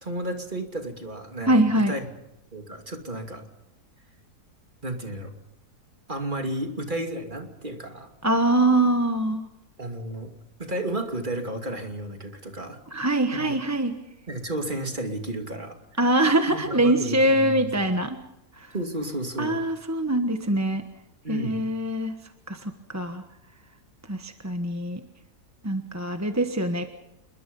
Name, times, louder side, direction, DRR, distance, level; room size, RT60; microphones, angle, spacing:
voice 1, 0.0-2.0 2.5-3.4 4.8-5.3 6.1-8.1 9.8-10.3 10.6-12.8 13.3-13.5 14.3-15.8 16.5-17.7 18.7-19.6 21.2-21.6, right 1 dB, 30° right, 4 dB, 2.9 m, -32 dB
voice 2, 1.4-1.9 8.2-9.4 12.9-13.9 16.0-18.2 19.4-20.8 21.3-22.1 22.5-23.2 24.1-25.0 25.6-26.9, right 1 dB, 10° right, 6 dB, 1.1 m, -23 dB
28.0 x 22.5 x 5.5 m, 0.87 s
omnidirectional pair, 1.7 m